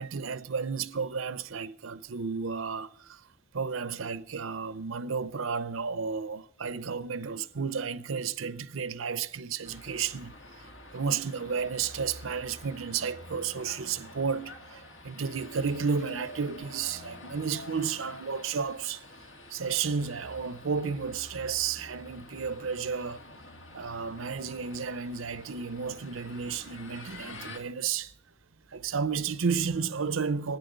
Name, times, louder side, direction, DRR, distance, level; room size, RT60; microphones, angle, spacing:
voice 1, 0.0-3.2 3.5-10.3 10.9-19.0 19.5-23.2 23.7-28.1 28.7-30.6, right 6 dB, 75° right, 0.7 m, -32 dB
sound 1, 9.6-27.6, left 1 dB, 65° left, 2.2 m, -48 dB
10.5 x 9.5 x 7.9 m
head